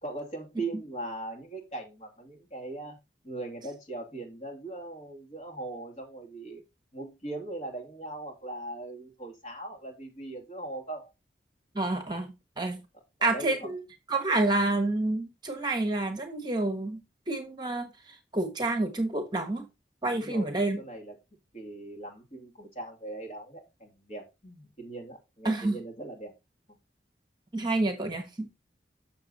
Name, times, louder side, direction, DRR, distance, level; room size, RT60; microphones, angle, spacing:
voice 1, 0.0-3.0 3.2-6.6 6.9-11.1 12.9-13.7 20.1-21.2 21.5-26.3, right 2 dB, 35° left, 2.5 m, -40 dB
voice 2, 11.7-12.8 13.2-13.8 14.1-17.0 17.3-17.9 18.3-19.7 20.0-20.8 25.4-25.8 27.5-28.5, right 2 dB, 25° right, 1.1 m, -28 dB
7.2 x 6.6 x 4.0 m
head